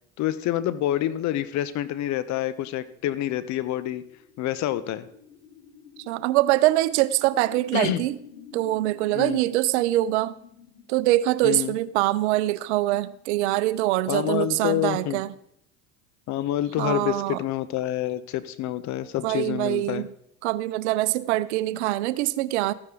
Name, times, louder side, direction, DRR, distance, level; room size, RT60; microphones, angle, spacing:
voice 1, 0.2-4.0 4.4-5.1 7.7-8.0 9.1-9.4 11.4-11.7 14.1-15.2 16.3-20.1, left 13 dB, 55° left, 15 dB, 1.0 m, -27 dB
sound 1, 4.1-14.6, left 7 dB, 85° left, 5.4 m, -51 dB
voice 2, 6.1-8.2 8.5-10.3 10.9-15.3 16.8-17.4 19.2-20.1 20.4-22.7, right 16 dB, 75° right, 17 dB, 0.7 m, -24 dB
14.0 x 9.9 x 3.8 m, 0.73 s
hypercardioid pair, 80°, 34 cm